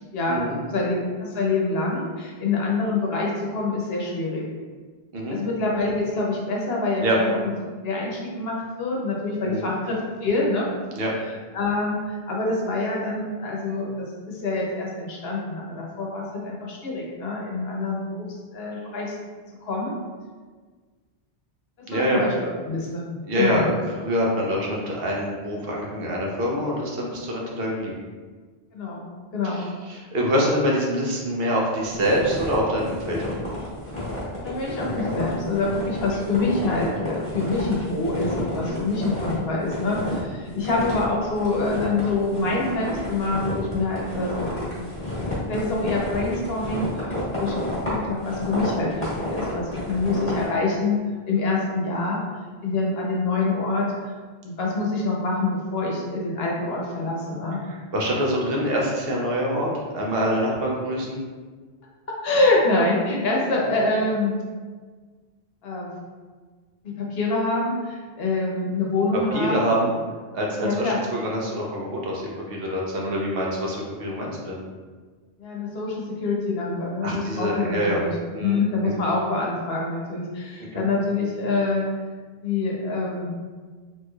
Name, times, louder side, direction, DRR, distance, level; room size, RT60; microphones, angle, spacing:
voice 1, 1.2-4.4 5.3-7.5 7.8-10.7 11.5-18.3 18.5-19.1 19.6-19.9 21.8-23.0 23.3-23.7 28.7-29.1 29.3-29.7 34.3-45.0 45.5-46.9 47.4-47.5 47.9-51.0 51.2-52.2 52.6-53.8 54.4-57.6 62.2-64.3 65.6-65.9 66.8-69.8 70.6-71.0 75.4-78.1 78.4-81.8 82.4-83.3, left 3 dB, 75° left, -3 dB, 0.9 m, -26 dB
voice 2, 21.9-22.2 23.3-23.7 24.0-28.0 29.5-33.2 38.6-38.8 40.0-40.2 47.1-47.3 57.7-59.7 59.9-61.2 69.3-69.9 70.3-72.2 72.5-74.6 77.0-78.0 78.3-78.9 80.7-80.8, equal, 70° right, -3 dB, 0.9 m, -25 dB
sound 1, 31.9-39.4 39.6-40.3 40.6-50.5, left 1 dB, 15° left, 1.1 m, -31 dB
3.1 x 3.0 x 2.3 m, 1.5 s
omnidirectional pair, 1.0 m